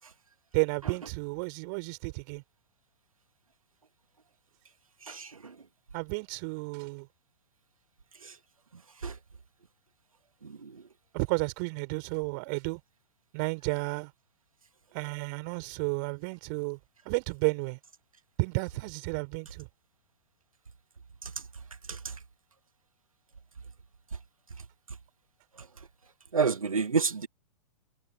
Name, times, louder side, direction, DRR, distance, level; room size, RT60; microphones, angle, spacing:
voice 1, 0.5-2.4 5.9-7.1 11.1-12.8 13.3-14.1 14.9-16.8 17.1-17.8 18.4-19.7, right 31 dB, 35° right, 5.2 m, -32 dB
voice 2, 26.3-27.3, right 5 dB, 70° right, 2.1 m, -28 dB
figure-of-eight pair, 115°, 18 cm